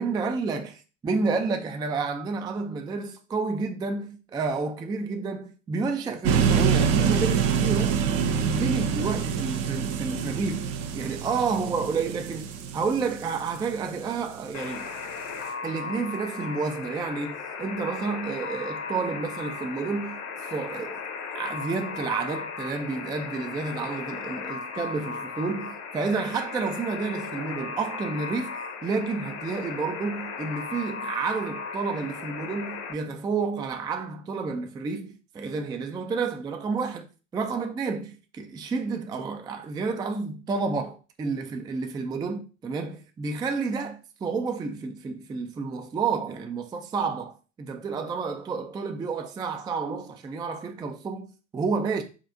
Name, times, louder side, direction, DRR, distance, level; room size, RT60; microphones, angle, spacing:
voice 1, 0.0-0.7 1.0-8.0 8.3-14.9 15.6-20.2 20.5-21.0 21.3-28.5 28.8-37.1 37.3-52.0, right 4 dB, 10° right, 0.3 m, -30 dB
sound 1, 6.2-14.3, right 7 dB, 65° right, 0.7 m, -26 dB
Alarm, 14.5-32.9, left 5 dB, 40° left, 0.8 m, -36 dB
4.3 x 2.4 x 3.6 m
hypercardioid pair, 75°, 40 cm